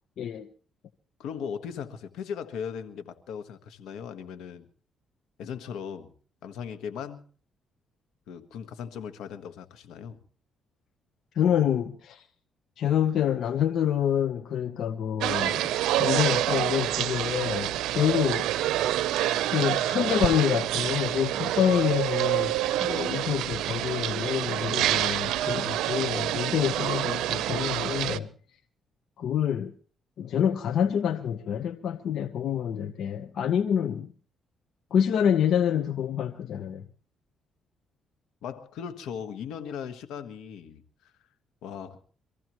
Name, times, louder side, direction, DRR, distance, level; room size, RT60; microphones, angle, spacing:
voice 1, 0.2-0.5 11.3-12.3 12.8-15.6 16.0-18.5 19.5-28.3 29.2-29.7 30.2-34.1 34.9-36.8, left 9 dB, 70° left, 0.9 m, -27 dB
voice 2, 1.2-4.7 5.4-6.1 6.4-7.2 8.3-10.2 38.4-41.1 41.6-42.0, left 7 dB, 85° left, 1.4 m, -38 dB
sound 1, 15.2-28.2, right 13 dB, 90° right, 0.6 m, -27 dB
24.5 x 15.0 x 3.1 m
cardioid pair, 90°, 0 cm